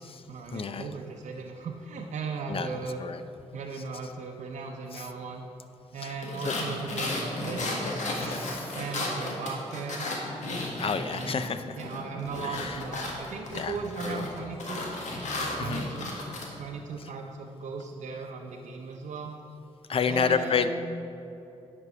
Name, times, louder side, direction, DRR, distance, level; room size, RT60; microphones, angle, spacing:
voice 1, 0.0-3.0 3.5-5.5 5.9-8.1 8.7-10.1 10.8-14.9 15.6-16.1 16.6-19.3 20.1-20.7, right 4 dB, 80° right, 1 dB, 0.7 m, -37 dB
voice 2, 0.5-0.9 2.5-3.2 4.9-5.1 6.0-6.6 8.1-8.8 10.8-11.8 12.4-12.8 13.5-13.8 14.0-14.2 15.6-15.8 19.9-20.7, left 6 dB, 50° left, 11 dB, 0.5 m, -30 dB
sound 1, 6.2-11.5 11.8-16.5, left 2 dB, 80° left, 1.6 m, -34 dB
sound 2, 12.1-17.5, left 1 dB, 30° left, 1.7 m, -50 dB
9.6 x 5.3 x 6.0 m, 2.8 s
cardioid pair, 85°, 12 cm